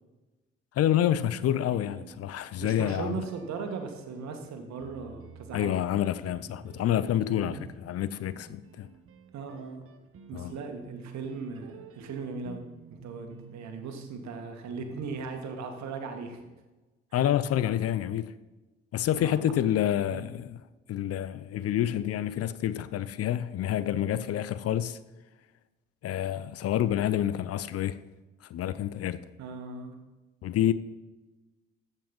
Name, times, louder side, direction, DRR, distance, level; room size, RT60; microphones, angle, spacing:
voice 1, 0.8-3.2 5.5-8.9 10.3-10.5 17.1-18.3 18.9-20.6 20.9-25.0 26.0-28.0 28.5-29.2 30.4-30.7, left 11 dB, 50° left, 0.6 m, -28 dB
sound 1, 1.3-2.7 3.3-15.5, right 6 dB, 45° right, 1.2 m, -50 dB
voice 2, 2.6-5.7 7.4-7.7 9.3-9.8 10.3-12.6 12.9-16.4 17.1-17.2 19.1-19.4 20.1-20.2 29.4-29.9, right 4 dB, 60° right, 1.7 m, -38 dB
14.5 x 5.4 x 5.4 m
hypercardioid pair, 45°, 31 cm